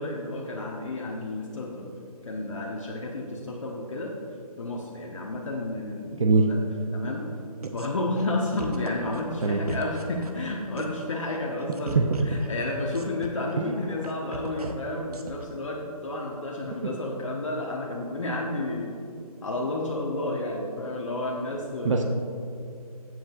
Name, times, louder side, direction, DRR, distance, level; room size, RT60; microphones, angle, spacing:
voice 1, 0.0-1.9 2.2-4.1 4.6-6.6 6.9-7.2 7.7-18.9 19.4-22.0, left 2 dB, 55° left, -2 dB, 1.1 m, -31 dB
voice 2, 6.2-6.5 9.4-9.6 12.0-12.1 13.6-13.7 21.8-22.0, right 4 dB, 50° right, 3 dB, 0.7 m, -21 dB
sound 1, 7.6-7.9 8.2-8.3 8.6-10.5 10.8-11.1 11.3-14.7 15.1-15.5, right 3 dB, 75° right, 1.0 m, -38 dB
14.0 x 7.7 x 2.5 m, 2.6 s
figure-of-eight pair, 160°, 20 cm